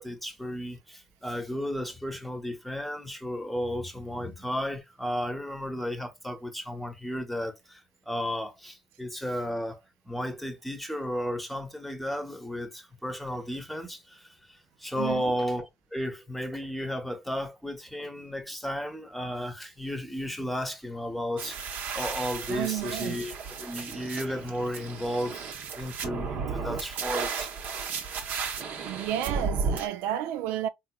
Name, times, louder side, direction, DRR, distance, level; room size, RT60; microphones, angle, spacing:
voice 1, 0.0-21.6 21.9-23.3 23.6-27.5, equal, 5° left, 0.9 m, -34 dB
voice 2, 15.0-15.4 22.5-23.2 28.8-30.7, right 12 dB, 80° right, 0.3 m, -31 dB
sound 1, 21.4-29.9, right 5 dB, 60° right, 0.9 m, -34 dB
3.8 x 2.9 x 2.2 m
supercardioid pair, 80°, 3 cm